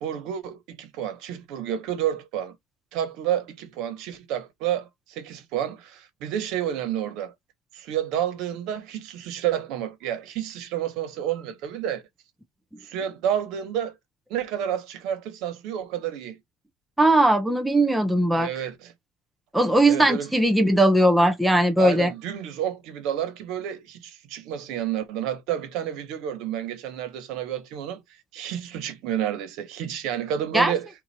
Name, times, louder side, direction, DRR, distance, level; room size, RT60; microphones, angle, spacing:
voice 1, 0.0-2.5 2.9-7.3 7.7-12.0 12.8-13.9 14.3-16.4 18.4-18.9 19.9-20.3 21.8-28.0 28.3-30.9, right 10 dB, 70° right, 1.3 m, -30 dB
voice 2, 17.0-18.5 19.5-22.1 30.5-30.7, right 1 dB, 5° right, 0.5 m, -19 dB
4.0 x 2.6 x 4.4 m
cardioid pair, 155°, 0 cm